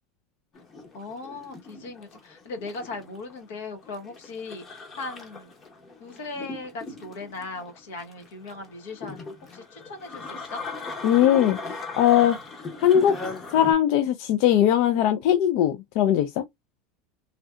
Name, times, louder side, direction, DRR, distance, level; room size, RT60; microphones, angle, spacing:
sound 1, 0.5-13.7, left 3 dB, 25° left, 0.8 m, -38 dB
voice 1, 0.9-4.6 5.0-5.5 6.0-10.6, left 3 dB, 85° left, 1.3 m, -38 dB
voice 2, 11.0-11.6 12.0-12.4 12.8-13.1 13.5-16.4, left 10 dB, 55° left, 0.4 m, -20 dB
3.2 x 2.7 x 2.3 m
supercardioid pair, 150°, 0 cm